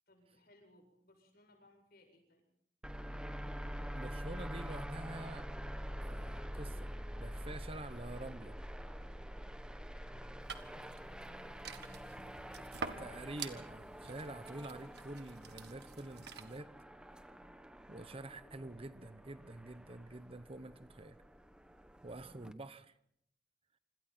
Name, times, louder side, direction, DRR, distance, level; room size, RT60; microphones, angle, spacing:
voice 1, 0.1-2.4 9.9-13.0, left 1 dB, 60° left, 2 dB, 7.6 m, -66 dB
sound 1, 2.8-22.5, equal, 5° right, 1.2 m, -46 dB
voice 2, 3.9-5.5 6.0-8.6 13.0-16.7 17.9-21.2 22.0-22.9, right 2 dB, 35° right, 12 dB, 1.0 m, -47 dB
sound 2, 10.4-16.6, right 5 dB, 70° right, 1.7 m, -48 dB
27.0 x 26.0 x 4.4 m, 0.72 s
head